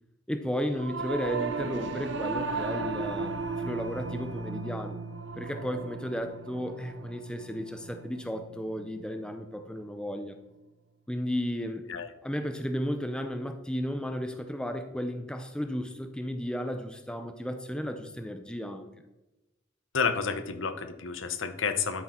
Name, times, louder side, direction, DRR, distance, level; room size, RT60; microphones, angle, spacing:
voice 1, 0.3-5.0 5.4-10.3 11.1-11.8 12.2-18.9, equal, 5° left, 7 dB, 0.6 m, -34 dB
Singing / Musical instrument, 0.7-10.3, right 3 dB, 60° right, 0.8 m, -36 dB
voice 2, 19.9-22.0, left 5 dB, 75° left, 9 dB, 0.9 m, -30 dB
12.0 x 6.4 x 4.4 m, 1.0 s
head